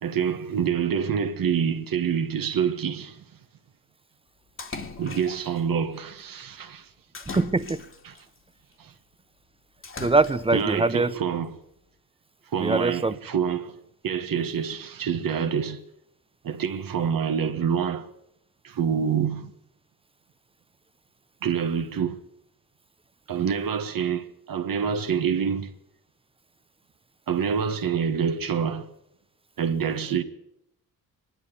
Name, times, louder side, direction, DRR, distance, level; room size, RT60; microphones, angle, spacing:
voice 1, 0.0-3.2 5.0-6.9 8.1-8.2 8.8-8.9 10.5-11.5 12.5-13.8 14.0-15.8 16.4-18.1 18.6-19.5 21.4-22.2 23.3-25.7 27.3-28.9 29.6-30.2, right 7 dB, 70° right, 1.7 m, -26 dB
Splash splatter, 4.6-5.6 7.1-8.2 9.8-10.7, left 3 dB, 35° left, 2.0 m, -39 dB
voice 2, 7.3-7.8 10.0-11.1 12.6-13.2, right 3 dB, 15° right, 0.7 m, -22 dB
23.5 x 11.0 x 9.8 m
wide cardioid pair, 125°, 36 cm